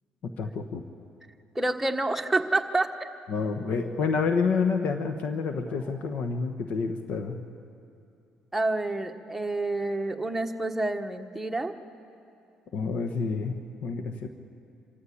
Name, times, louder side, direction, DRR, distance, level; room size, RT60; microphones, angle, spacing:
voice 1, 0.2-0.9 3.3-7.4 12.7-13.6 13.8-14.3, left 5 dB, 65° left, 6 dB, 1.2 m, -28 dB
voice 2, 1.5-3.1 8.5-11.7, right 2 dB, 5° right, 4 dB, 1.3 m, -28 dB
27.0 x 14.5 x 8.6 m, 2.6 s
cardioid pair, 100°, 3 cm